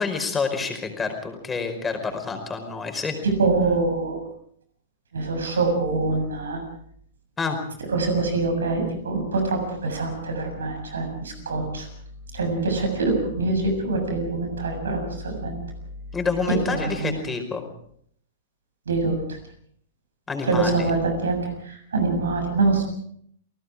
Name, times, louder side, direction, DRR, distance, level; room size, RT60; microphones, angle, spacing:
voice 1, 0.0-3.2 7.4-7.6 16.1-17.6 20.3-20.9, left 4 dB, 15° left, 5 dB, 5.0 m, -28 dB
voice 2, 3.2-4.2 5.1-6.6 7.9-11.9 12.3-15.5 16.5-17.2 18.9-19.4 20.4-22.8, right 3 dB, 75° right, 5 dB, 7.1 m, -24 dB
29.5 x 19.0 x 4.9 m, 0.65 s
figure-of-eight pair, 105°, 0 cm